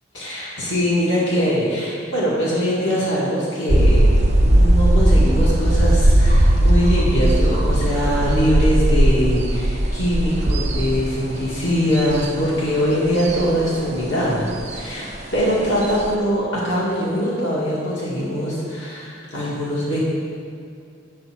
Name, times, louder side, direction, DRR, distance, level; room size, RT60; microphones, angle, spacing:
voice 1, 0.1-4.0 4.4-20.0, equal, 85° left, -7 dB, 2.0 m, -22 dB
sound 1, 3.7-16.2, right 1 dB, 40° right, 0.7 m, -18 dB
9.6 x 7.5 x 4.4 m, 2.4 s
head